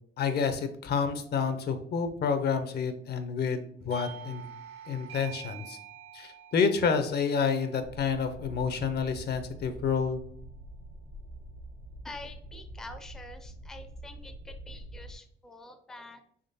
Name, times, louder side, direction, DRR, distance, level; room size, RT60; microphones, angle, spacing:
voice 1, 0.2-3.6 3.8-4.4 4.9-5.8 6.1-10.2, left 6 dB, 55° left, 8 dB, 0.5 m, -29 dB
Doorbell, 3.9-9.2, right 9 dB, 85° right, 0.8 m, -47 dB
sound 1, 7.8-15.2, right 1 dB, 75° left, 1.4 m, -46 dB
voice 2, 12.0-16.2, left 2 dB, ahead, 7 dB, 0.4 m, -46 dB
3.6 x 3.2 x 2.7 m, 0.63 s
cardioid pair, 90°, 20 cm